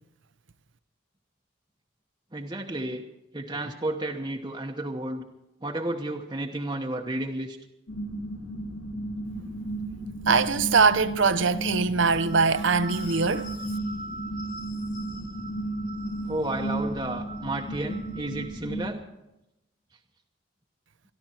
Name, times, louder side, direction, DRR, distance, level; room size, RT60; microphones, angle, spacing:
voice 1, 2.3-3.0 3.3-5.2 5.6-7.6 16.3-19.0, right 1 dB, 20° right, 1.0 m, -32 dB
sound 1, 7.9-18.9, right 1 dB, 85° left, 3.8 m, -34 dB
voice 2, 10.3-13.5, right 4 dB, 80° right, 0.8 m, -22 dB
sound 2, 12.0-18.5, right 2 dB, 45° left, 1.8 m, -43 dB
26.0 x 11.5 x 4.4 m
head